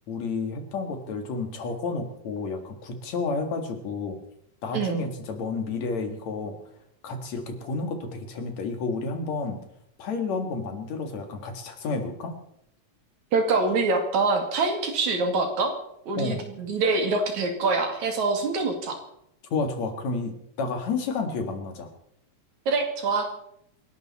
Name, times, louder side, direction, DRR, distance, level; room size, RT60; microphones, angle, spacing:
voice 1, 0.1-4.2 4.6-6.6 7.0-9.6 10.0-12.4 16.2-16.4 19.5-21.9, left 4 dB, 65° left, 6 dB, 3.2 m, -31 dB
voice 2, 4.7-5.1 13.3-15.7 16.1-19.0 22.7-23.3, right 3 dB, 75° right, 4 dB, 3.6 m, -25 dB
27.5 x 11.5 x 4.3 m, 0.75 s
omnidirectional pair, 3.4 m